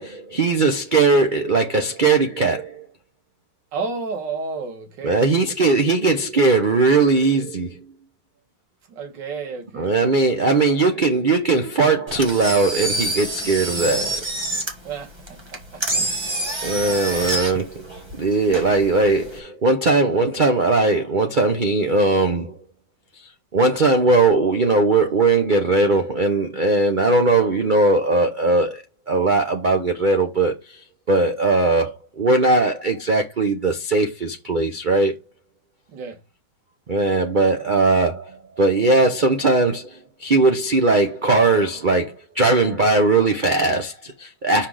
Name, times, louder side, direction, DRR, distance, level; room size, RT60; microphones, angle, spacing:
voice 1, 0.0-2.9 5.0-7.8 9.8-14.2 16.6-22.6 23.2-30.8 31.1-35.1 36.9-44.7, right 3 dB, 85° right, 0.4 m, -19 dB
voice 2, 3.7-5.3 8.9-10.1 14.8-15.4 15.7-16.0 35.9-36.2, right 4 dB, 70° right, 2.0 m, -31 dB
Engine, 12.1-19.4, right 1 dB, 15° right, 1.3 m, -28 dB
5.8 x 5.0 x 4.8 m
omnidirectional pair, 2.1 m